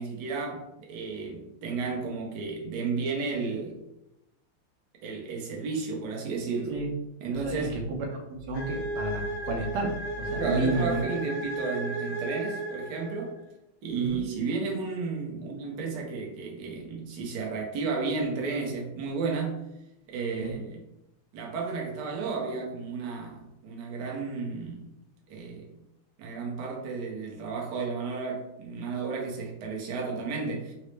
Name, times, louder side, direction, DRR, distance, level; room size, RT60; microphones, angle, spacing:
voice 1, 0.0-3.8 5.0-6.8 7.2-7.8 10.4-13.3 13.8-19.7 20.1-20.8 21.3-24.8 25.3-25.7 26.2-30.7, right 4 dB, 65° right, -1 dB, 1.1 m, -33 dB
voice 2, 7.5-7.8 8.1-11.1 13.9-14.2 20.4-20.5, right 2 dB, 85° right, 1 dB, 1.5 m, -31 dB
sound 1, 8.5-13.4, right 2 dB, 65° left, 0.8 m, -34 dB
3.9 x 2.0 x 3.1 m, 0.87 s
omnidirectional pair, 2.4 m